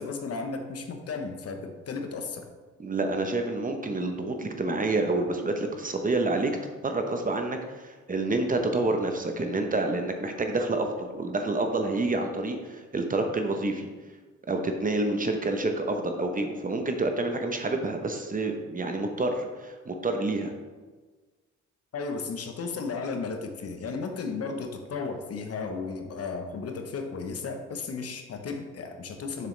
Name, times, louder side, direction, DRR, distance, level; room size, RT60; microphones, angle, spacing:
voice 1, 0.0-2.5 21.9-29.5, left 4 dB, 50° left, 5 dB, 1.0 m, -34 dB
voice 2, 2.8-6.5 6.8-13.9 14.5-20.5, right 2 dB, 25° right, 5 dB, 0.9 m, -28 dB
6.8 x 6.7 x 3.3 m, 1.3 s
cardioid pair, 90°, 30 cm